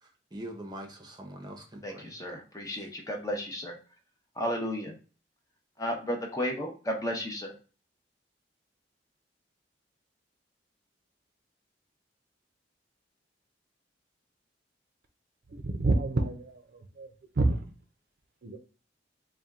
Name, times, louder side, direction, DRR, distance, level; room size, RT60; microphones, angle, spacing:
voice 1, 0.0-2.1 2.6-2.9, right 1 dB, 25° right, 0.7 m, -44 dB
voice 2, 1.8-3.8 4.4-5.0 5.8-7.5, equal, 20° left, 0.7 m, -33 dB
voice 3, 15.5-17.1 17.4-17.6 18.4-18.6, right 2 dB, 55° right, 0.5 m, -28 dB
4.2 x 2.2 x 3.6 m
head